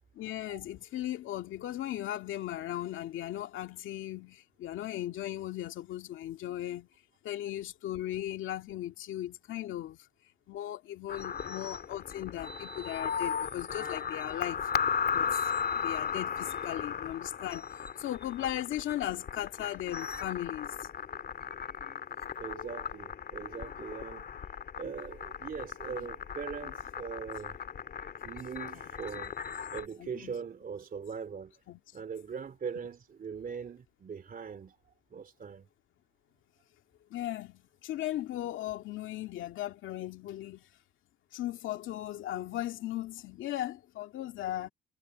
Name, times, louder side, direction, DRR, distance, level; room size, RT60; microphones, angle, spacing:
voice 1, 0.1-6.9 7.2-10.0 10.5-14.6 15.1-17.7 18.0-20.9 30.0-30.3 31.7-31.8 37.1-40.7 41.3-44.7, left 13 dB, 80° left, 2.1 m, -37 dB
sound 1, 11.1-29.9, left 7 dB, 50° left, 2.0 m, -36 dB
voice 2, 22.4-24.3 24.8-27.6 28.2-29.3 29.7-31.5 31.9-35.7, right 6 dB, 45° right, 2.7 m, -41 dB
cardioid pair, 90°, 20 cm